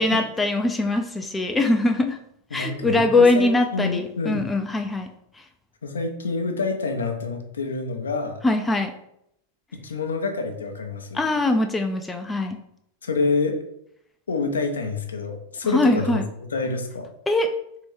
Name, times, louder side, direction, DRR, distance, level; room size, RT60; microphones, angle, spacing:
voice 1, 0.0-2.2 2.5-5.1 5.3-5.4 8.4-8.9 11.1-12.6 15.7-16.2 17.3-17.5, left 2 dB, 10° left, 5 dB, 0.3 m, -22 dB
voice 2, 2.5-4.5 5.8-8.4 9.8-11.3 13.0-13.6 14.3-16.2 16.5-17.1, left 3 dB, 70° left, 5 dB, 0.5 m, -27 dB
3.4 x 2.8 x 3.2 m, 0.75 s
figure-of-eight pair, 90°, 0 cm